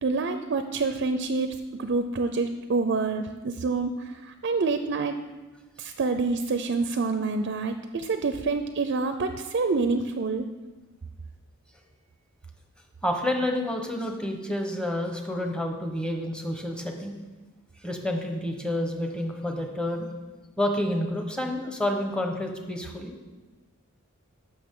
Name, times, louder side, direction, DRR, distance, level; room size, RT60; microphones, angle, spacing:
voice 1, 0.0-5.2 5.8-10.5, right 3 dB, 60° right, 8 dB, 0.5 m, -27 dB
voice 2, 13.0-17.2 17.8-20.1 20.6-23.3, left 1 dB, 5° left, 3 dB, 1.0 m, -29 dB
14.5 x 6.1 x 3.7 m, 1.2 s
head